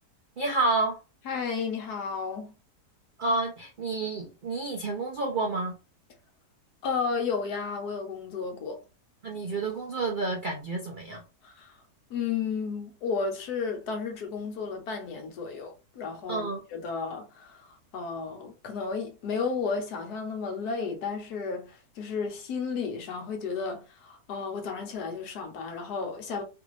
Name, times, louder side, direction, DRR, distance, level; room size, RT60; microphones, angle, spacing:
voice 1, 0.4-1.0 3.2-5.8 9.2-11.2 16.3-16.6, right 3 dB, 75° right, 0.4 m, -29 dB
voice 2, 1.2-2.5 6.8-8.8 11.4-11.8 12.1-16.4 16.7-26.4, left 5 dB, 70° left, 1.3 m, -33 dB
3.4 x 2.5 x 3.1 m
omnidirectional pair, 1.7 m